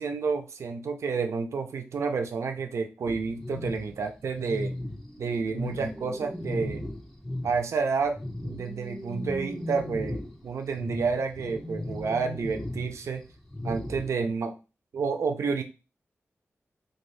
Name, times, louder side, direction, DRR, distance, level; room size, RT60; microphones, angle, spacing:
voice 1, 0.0-4.7 5.2-6.8 7.4-13.3 13.6-14.6 14.9-15.6, right 5 dB, 75° right, 6 dB, 0.4 m, -30 dB
sound 1, 3.1-7.7 8.0-14.1, left 1 dB, 5° left, 0.4 m, -36 dB
2.6 x 2.4 x 3.1 m, 0.31 s
wide cardioid pair, 145°, 5 cm